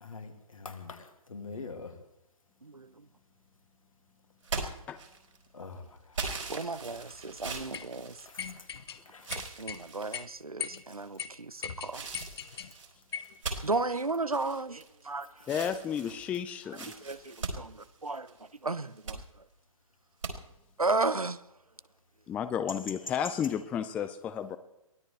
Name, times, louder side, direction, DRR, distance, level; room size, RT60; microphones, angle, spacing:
voice 1, 0.0-1.9 5.5-5.8 8.3-8.4 9.1-9.3, left 4 dB, 70° left, 2.6 m, -43 dB
sound 1, 4.4-5.5 6.1-8.8 9.2-10.2 10.9-11.3 11.9-15.1 15.4-18.4 18.8-19.2 20.2-20.3, right 4 dB, 65° right, 4.6 m, -40 dB
voice 2, 6.5-8.2 9.4-12.1 13.6-15.5 16.9-18.3 18.6-19.2 20.8-21.4, right 3 dB, 85° right, 0.9 m, -34 dB
sound 2, 7.7-7.9 8.4-9.0 9.3-9.8 10.1-10.3 10.6-10.8 11.2-11.3 11.6-12.7 13.1-13.4, left 7 dB, 45° left, 1.3 m, -38 dB
voice 3, 15.5-16.9 22.3-24.6, left 8 dB, 5° left, 0.4 m, -32 dB
23.0 x 17.0 x 3.4 m
figure-of-eight pair, 130°, 18 cm